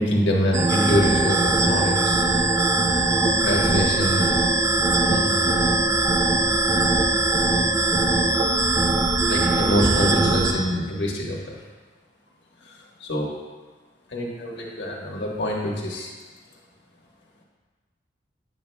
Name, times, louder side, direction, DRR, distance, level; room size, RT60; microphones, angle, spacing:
voice 1, 0.0-2.2 3.4-4.3 5.0-5.5 9.2-11.6 12.6-13.4 14.1-16.1, equal, 80° left, -2 dB, 1.4 m, -25 dB
sound 1, 0.5-10.5, right 2 dB, 20° right, 0.5 m, -21 dB
8.9 x 7.7 x 2.2 m, 1.4 s
head